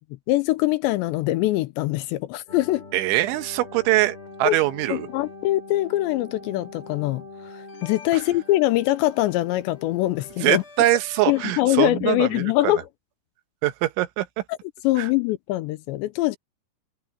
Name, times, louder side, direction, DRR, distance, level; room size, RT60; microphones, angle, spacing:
voice 1, 0.3-2.8 4.5-4.6 4.9-7.2 7.5-10.6 11.3-12.8 14.8-16.4, left 16 dB, 80° left, 2.8 m, -23 dB
sound 1, 2.5-11.5, left 3 dB, 30° left, 4.9 m, -43 dB
voice 2, 2.9-5.1 8.1-8.2 10.4-12.7 13.6-14.4 15.0-15.1, right 15 dB, 85° right, 3.5 m, -23 dB
omnidirectional pair, 5.4 m